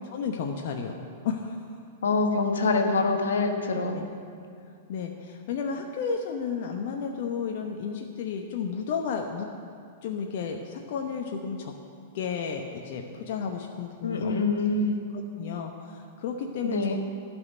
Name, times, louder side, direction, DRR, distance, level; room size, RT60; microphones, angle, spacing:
voice 1, 0.1-1.0 1.2-1.6 3.9-4.1 4.9-9.5 10.0-11.7 12.1-14.3 15.1-17.0, left 6 dB, 55° left, 2 dB, 0.9 m, -32 dB
voice 2, 2.0-4.0 14.0-15.0 16.6-17.0, left 3 dB, 80° left, 4 dB, 1.3 m, -25 dB
12.0 x 6.3 x 9.3 m, 2.3 s
hypercardioid pair, 110°, 0 cm